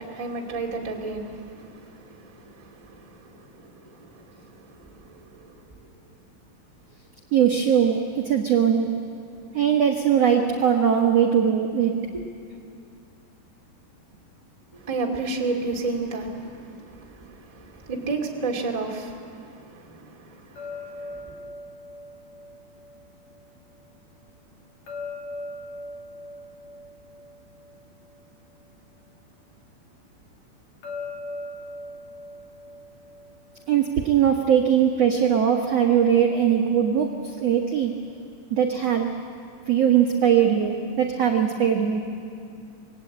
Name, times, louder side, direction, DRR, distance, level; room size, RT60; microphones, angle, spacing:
voice 1, 0.0-5.6 12.1-12.2 14.7-21.2, right 3 dB, 15° right, 0 dB, 1.5 m, -33 dB
voice 2, 7.3-8.9 9.5-12.0 33.7-37.9 38.5-39.1 39.7-42.0, right 8 dB, 60° right, 1 dB, 1.7 m, -20 dB
sound 1, 20.6-23.6 24.9-28.4 30.8-33.9, left 2 dB, 40° left, 3.6 m, -39 dB
27.5 x 22.0 x 8.6 m, 2.4 s
omnidirectional pair, 5.0 m